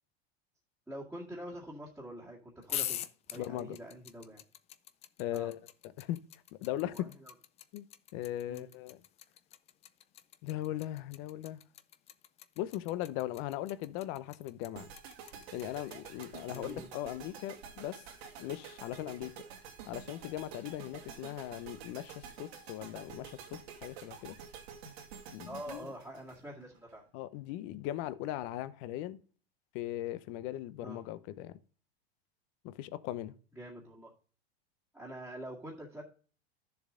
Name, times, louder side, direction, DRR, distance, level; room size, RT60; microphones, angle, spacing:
voice 1, 0.9-3.0 3.3-4.4 5.3-5.5 6.8-7.3 8.5-8.6 16.5-16.9 25.5-27.0 30.8-31.0 33.6-34.1 34.9-36.0, right 1 dB, 5° right, 1.9 m, -45 dB
sound 1, 2.6-16.7, left 12 dB, 20° left, 0.4 m, -43 dB
voice 2, 3.4-3.8 5.2-5.6 6.0-6.2 6.6-7.1 7.7-7.8 8.1-9.0 10.4-11.6 12.6-14.9 15.5-18.0 18.4-19.3 19.9-24.4 25.3-25.9 27.1-29.2 29.7-31.5 32.6-33.3, left 14 dB, 40° left, 0.8 m, -39 dB
sound 2, 14.7-26.9, right 7 dB, 75° right, 2.4 m, -49 dB
12.0 x 7.0 x 3.7 m
supercardioid pair, 145°, 32 cm